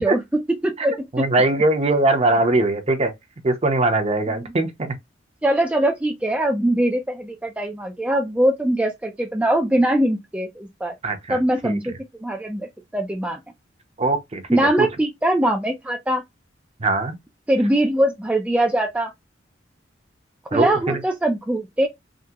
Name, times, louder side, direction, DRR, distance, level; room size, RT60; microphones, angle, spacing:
voice 1, 0.0-1.3 4.4-4.5 5.4-10.9 11.3-11.9 12.2-13.4 14.5-16.2 17.5-19.1 20.5-21.9, right 1 dB, 5° right, 0.3 m, -22 dB
voice 2, 1.1-3.1 3.4-4.9 11.0-11.4 11.6-11.8 14.0-14.9 16.8-17.1 20.5-21.0, right 2 dB, 35° right, 0.7 m, -21 dB
3.6 x 2.1 x 2.8 m
head